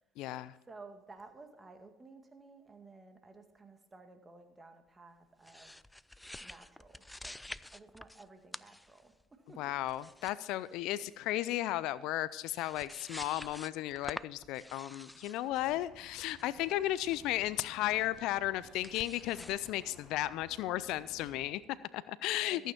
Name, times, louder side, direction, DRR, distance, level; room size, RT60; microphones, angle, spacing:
voice 1, 0.2-0.5 9.6-22.7, left 15 dB, 70° left, 18 dB, 0.4 m, -34 dB
voice 2, 0.7-5.7 6.4-7.4 7.7-9.7 22.4-22.7, right 3 dB, 25° right, 6 dB, 2.1 m, -54 dB
sound 1, 5.4-8.3 8.5-9.2 9.9-10.3 10.6-11.1 12.1-12.2 12.4-17.2 17.9-18.2 18.7-19.7, left 1 dB, 10° left, 0.4 m, -48 dB
sound 2, 15.5-21.5, left 2 dB, 50° left, 5.2 m, -57 dB
14.0 x 9.0 x 4.4 m, 0.96 s
hypercardioid pair, 70°, 0 cm